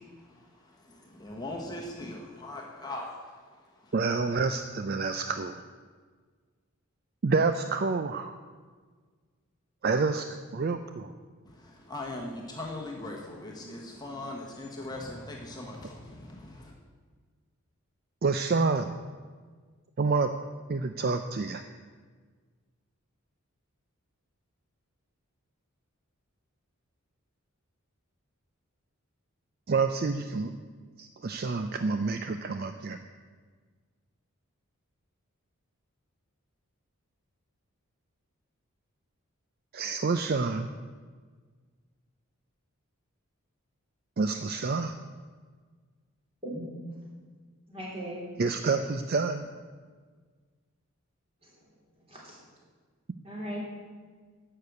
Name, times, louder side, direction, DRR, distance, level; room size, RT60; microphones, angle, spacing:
voice 1, 0.0-3.9 11.4-16.7, left 2 dB, 20° left, -1 dB, 1.2 m, -40 dB
voice 2, 3.9-5.6 7.2-8.3 9.8-11.1 13.6-13.8 18.2-18.9 20.0-20.3 20.7-21.6 29.7-30.5 31.0-33.0 39.7-40.7 44.2-45.0 48.4-49.4, right 4 dB, 45° right, 8 dB, 0.4 m, -28 dB
voice 3, 47.7-48.3 51.4-51.5 52.1-52.4 53.2-53.6, right 1 dB, 25° right, -4 dB, 3.6 m, -38 dB
10.5 x 6.7 x 7.9 m, 1.5 s
head